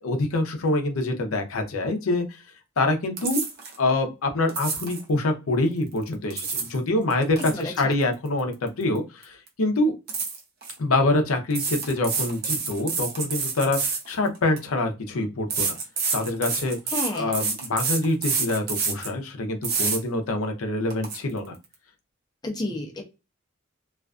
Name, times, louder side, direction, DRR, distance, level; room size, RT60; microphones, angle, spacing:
voice 1, 0.0-2.4 2.8-3.4 3.8-9.9 10.8-15.7 16.1-16.8 17.1-21.5, left 2 dB, 90° left, 5 dB, 0.6 m, -25 dB
sound 1, 3.2-3.8 4.5-5.0 6.1-6.8 7.1-9.0 9.2-9.5 10.1-10.7 11.5-14.7 15.5-19.1 19.6-20.0 20.5-20.6 20.9-21.2, right 5 dB, 50° right, 0.6 m, -28 dB
voice 2, 7.4-7.9 16.9-17.3 22.4-23.0, left 2 dB, 20° left, 1 dB, 0.5 m, -31 dB
2.4 x 2.4 x 2.3 m, 0.27 s
head